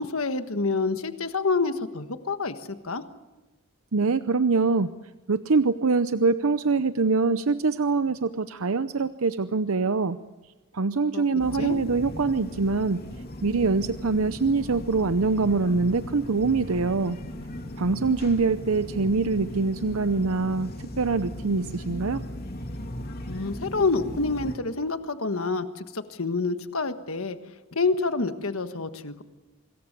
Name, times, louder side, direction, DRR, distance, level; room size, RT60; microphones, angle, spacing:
voice 1, 0.0-3.0 11.1-11.2 11.6-11.8 23.3-27.4 27.7-29.2, left 3 dB, 75° left, 9 dB, 1.5 m, -27 dB
voice 2, 3.9-4.9 5.3-10.2 10.7-13.0 13.4-17.2 17.8-20.7 21.0-22.2, right 4 dB, 75° right, 11 dB, 0.7 m, -24 dB
sound 1, 11.4-24.6, left 1 dB, 45° left, 2.9 m, -37 dB
25.5 x 21.5 x 6.8 m, 1.1 s
head